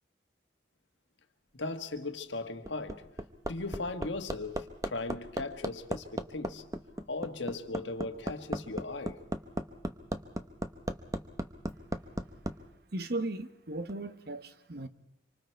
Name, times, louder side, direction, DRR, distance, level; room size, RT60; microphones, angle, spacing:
voice 1, 1.6-3.1 3.5-6.7 7.1-9.3, left 3 dB, 85° left, 1.5 m, -38 dB
Hammer, 2.4-12.5 13.9-14.0, right 1 dB, 20° right, 1.0 m, -35 dB
voice 2, 12.9-14.9, right 2 dB, 60° right, 1.2 m, -36 dB
26.0 x 25.0 x 4.5 m
head